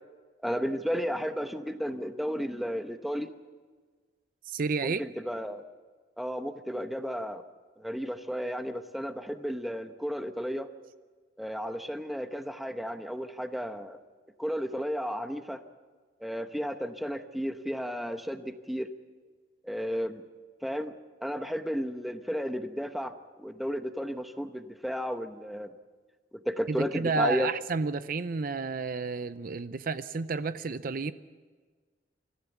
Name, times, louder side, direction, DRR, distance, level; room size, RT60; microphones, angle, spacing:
voice 1, 0.4-3.3 4.8-5.6 6.2-7.4 7.8-10.7 11.4-14.0 14.4-15.6 16.2-18.9 19.6-20.2 20.6-20.9 21.2-23.1 23.4-25.7 26.5-27.5, equal, ahead, 8 dB, 0.9 m, -33 dB
voice 2, 4.5-5.0 26.7-31.1, right 4 dB, 50° right, 13 dB, 0.5 m, -31 dB
25.0 x 14.5 x 8.0 m, 1.5 s
head